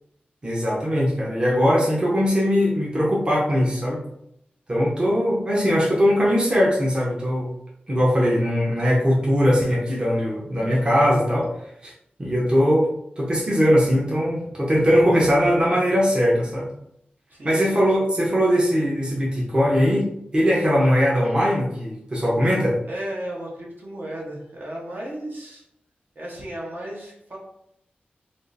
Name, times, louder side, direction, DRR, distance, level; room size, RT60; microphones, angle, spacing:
voice 1, 0.4-4.0 4.7-7.5 7.9-11.5 11.8-11.9 12.2-12.9 13.2-16.7 17.4-22.8, equal, 25° right, -4 dB, 0.7 m, -20 dB
voice 2, 17.3-18.1 22.8-25.6 26.1-27.4, right 1 dB, 60° right, -3 dB, 0.9 m, -35 dB
3.5 x 2.5 x 2.6 m, 0.75 s
wide cardioid pair, 115°, 3 cm